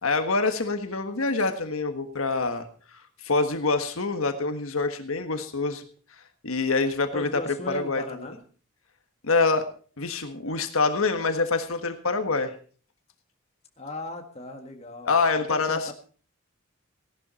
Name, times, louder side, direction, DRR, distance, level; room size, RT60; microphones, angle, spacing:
voice 1, 0.0-2.7 3.2-5.8 6.4-7.3 7.7-8.0 9.2-9.7 10.0-12.5 15.0-15.9, left 3 dB, 75° left, 7 dB, 1.5 m, -25 dB
voice 2, 7.1-8.4 13.8-15.9, left 1 dB, 30° left, 3 dB, 1.9 m, -37 dB
17.0 x 12.0 x 4.2 m, 0.40 s
head